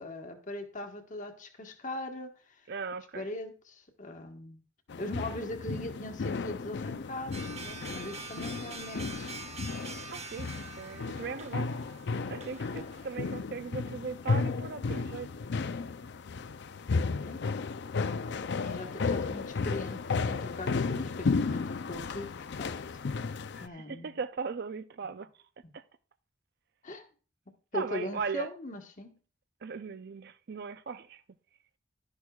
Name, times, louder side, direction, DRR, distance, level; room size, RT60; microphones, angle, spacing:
voice 1, 0.0-2.3 3.1-4.6 5.0-9.3 17.3-17.4 18.6-22.8 23.6-24.2 26.8-27.0 27.7-29.2, left 1 dB, 40° left, 1.3 m, -40 dB
voice 2, 2.7-3.3 10.1-11.7 12.3-15.3 23.5-25.3 25.7-25.8 27.7-28.5 29.6-31.2, right 5 dB, 55° right, 0.5 m, -38 dB
sound 1, 4.9-23.7, left 4 dB, 60° left, 0.5 m, -34 dB
sound 2, 7.3-13.2, right 4 dB, 35° right, 1.0 m, -45 dB
12.0 x 10.5 x 2.4 m
head